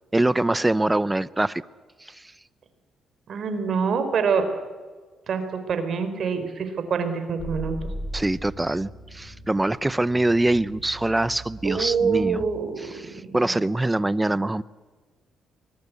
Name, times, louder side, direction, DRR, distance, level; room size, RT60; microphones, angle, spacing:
voice 1, 0.1-1.6 2.0-2.2 8.1-12.5 12.8-14.6, right 2 dB, 15° right, 18 dB, 0.8 m, -24 dB
voice 2, 3.3-4.5 5.3-7.8 11.6-13.2, right 5 dB, 60° right, 8 dB, 4.3 m, -25 dB
sound 1, 7.4-12.4, equal, 10° left, 6.9 m, -38 dB
24.0 x 20.5 x 8.3 m, 1.4 s
cardioid pair, 90°, 0 cm